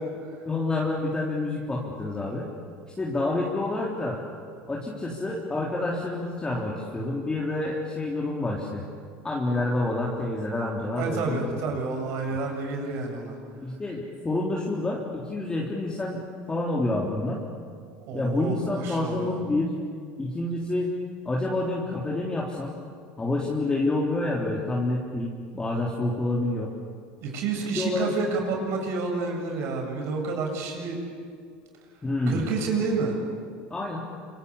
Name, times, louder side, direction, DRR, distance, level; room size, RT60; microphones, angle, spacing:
voice 1, 0.5-2.5 3.0-4.2 4.7-8.9 9.2-11.5 13.6-16.2 16.5-17.4 18.1-19.7 20.2-20.9 21.2-22.7 23.2-26.7 27.7-28.1 32.0-32.5 33.7-34.0, left 2 dB, 15° left, -3 dB, 3.7 m, -28 dB
voice 2, 11.0-13.4 18.0-19.4 27.2-31.0 32.3-33.2, right 4 dB, 60° right, 2 dB, 7.6 m, -29 dB
26.5 x 25.0 x 8.5 m, 2.2 s
supercardioid pair, 105°, 5 cm